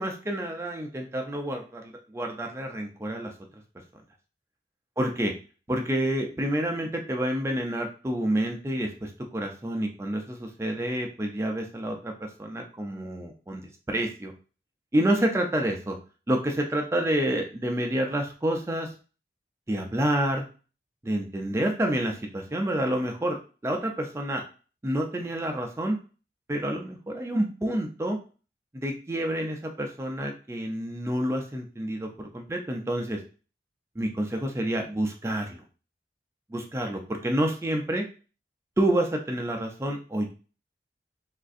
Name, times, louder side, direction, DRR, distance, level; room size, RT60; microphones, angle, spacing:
voice 1, 0.0-3.3 5.0-5.3 5.7-12.1 12.4-14.3 14.9-16.0 16.3-18.9 19.7-20.5 21.0-23.4 23.6-24.4 24.8-26.0 26.5-28.2 28.7-33.2 34.0-35.6 36.5-38.0 38.8-40.3, right 1 dB, 15° right, 2 dB, 0.3 m, -28 dB
3.6 x 2.4 x 2.4 m, 0.36 s
head